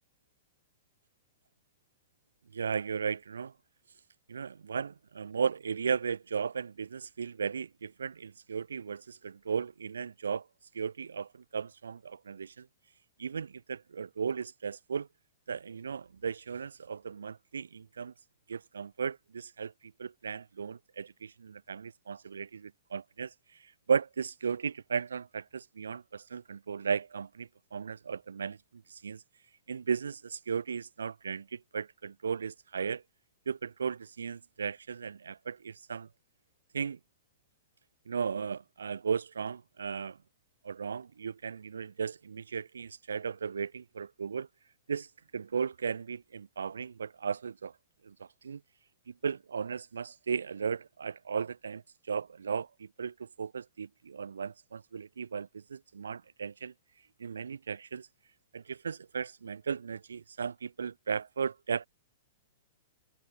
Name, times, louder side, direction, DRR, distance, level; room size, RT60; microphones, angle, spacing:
voice 1, 2.5-3.5 4.3-10.4 10.7-12.7 13.2-15.1 15.5-18.1 18.5-23.3 23.9-28.6 28.9-29.2 29.7-33.0 33.5-36.1 36.7-37.0 38.1-40.2 40.6-44.5 44.9-45.1 45.3-47.7 48.0-48.1 48.4-48.6 49.1-56.7 57.2-58.1 58.5-61.9, right 6 dB, 75° right, 3.2 m, -36 dB
figure-of-eight pair, 110°, 0 cm